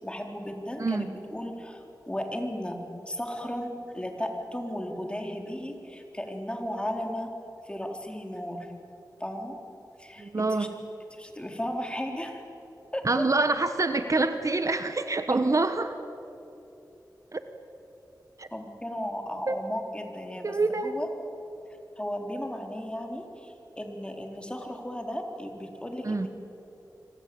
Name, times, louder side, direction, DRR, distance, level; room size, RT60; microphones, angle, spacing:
voice 1, 0.0-7.3 7.6-8.7 9.2-9.6 10.0-10.7 11.1-12.4 12.9-13.2 18.5-20.6 20.8-21.1 22.0-26.3, equal, 15° left, 3 dB, 4.2 m, -35 dB
voice 2, 10.2-10.7 13.0-16.0 17.3-17.4 18.4-18.5 19.5-19.6 20.4-20.9 26.0-26.3, right 3 dB, 45° right, 9 dB, 1.3 m, -26 dB
25.5 x 25.5 x 8.8 m, 3.0 s
wide cardioid pair, 60°, 7 cm